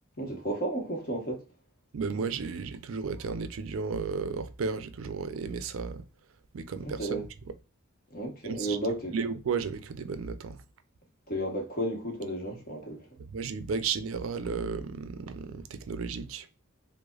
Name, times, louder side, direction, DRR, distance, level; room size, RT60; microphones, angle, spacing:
voice 1, 0.2-1.4 6.8-7.2 8.1-9.2 11.3-13.1, right 1 dB, 45° left, 1.0 m, -33 dB
voice 2, 1.9-6.0 6.5-7.3 8.4-8.8 9.1-10.6 13.3-16.5, right 5 dB, 70° right, 0.4 m, -33 dB
4.8 x 2.0 x 2.3 m
head